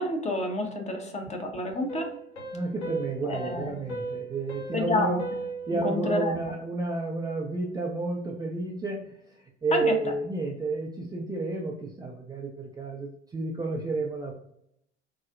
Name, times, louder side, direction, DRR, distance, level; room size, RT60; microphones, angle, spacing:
voice 1, 0.0-2.2 3.2-3.8 4.7-5.2 5.7-6.5 9.7-9.9, left 2 dB, 20° left, 3 dB, 0.7 m, -29 dB
sound 1, 1.7-6.6, right 2 dB, 90° left, 0.8 m, -38 dB
voice 2, 2.5-5.2 5.7-14.3, right 3 dB, 10° right, -1 dB, 0.4 m, -31 dB
3.9 x 2.0 x 2.4 m, 0.74 s
hypercardioid pair, 70°, 33 cm